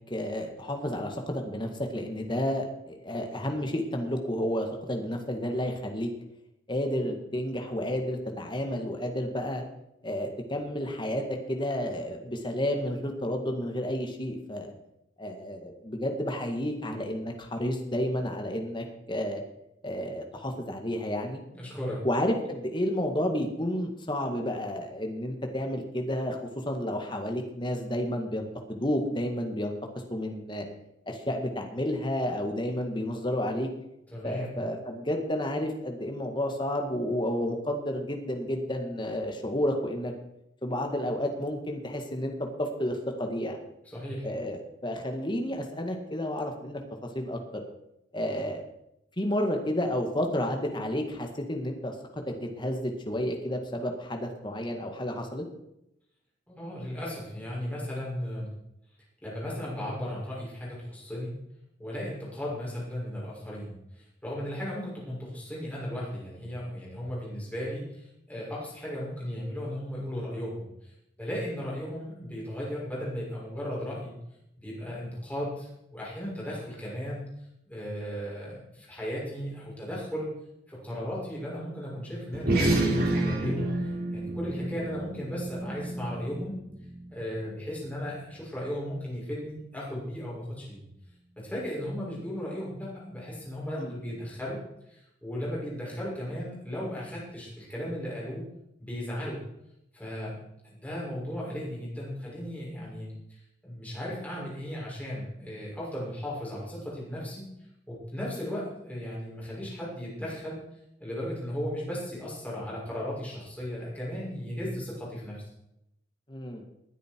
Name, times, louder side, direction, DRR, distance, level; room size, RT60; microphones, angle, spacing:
voice 1, 0.1-6.1 6.7-9.6 10.0-11.2 11.5-14.7 15.2-19.4 19.8-21.4 22.0-26.4 26.7-29.7 30.1-30.7 31.1-33.7 34.2-40.1 40.6-43.6 44.2-47.6 48.1-48.6 49.2-55.4 93.8-93.9 116.3-116.6, left 1 dB, 25° left, 3 dB, 1.9 m, -31 dB
voice 2, 21.5-22.0 34.1-34.5 43.8-44.3 56.5-58.5 59.2-61.4 61.8-74.1 74.6-77.3 77.7-80.3 80.7-86.6 87.1-90.8 91.4-94.6 94.9-98.4 98.8-99.4 99.9-100.3 100.6-107.4 107.9-110.6 111.0-115.4, equal, 10° left, -6 dB, 6.5 m, -36 dB
sound 1, 82.3-87.1, right 1 dB, 55° right, 3.7 m, -29 dB
20.0 x 9.7 x 4.7 m, 0.83 s
head